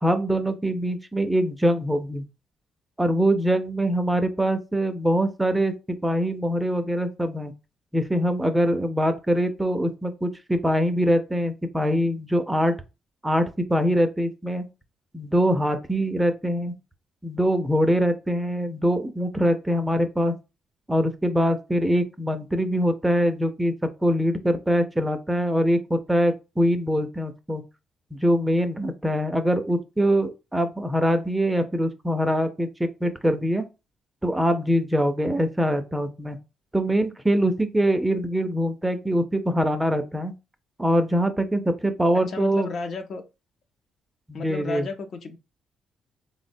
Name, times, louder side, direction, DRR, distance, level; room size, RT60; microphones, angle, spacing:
voice 1, 0.0-2.2 3.0-7.5 7.9-12.8 13.2-14.7 15.1-16.8 17.2-20.3 20.9-23.7 24.0-27.6 28.1-33.6 34.2-36.4 36.7-40.3 40.8-42.7 44.3-44.9, equal, 10° right, 0.4 m, -23 dB
voice 2, 42.3-43.2 44.3-45.4, left 4 dB, 60° left, 0.5 m, -33 dB
3.5 x 2.0 x 2.6 m
cardioid pair, 90°, 0 cm